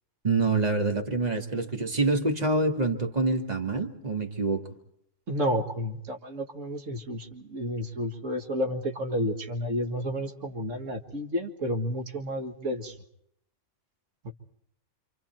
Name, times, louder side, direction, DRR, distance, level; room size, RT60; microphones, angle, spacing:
voice 1, 0.2-4.6, right 3 dB, 35° right, 4 dB, 2.2 m, -26 dB
voice 2, 5.3-13.0 14.2-14.3, equal, 85° right, 4 dB, 2.2 m, -31 dB
28.0 x 26.5 x 4.5 m, 0.70 s
omnidirectional pair, 1.3 m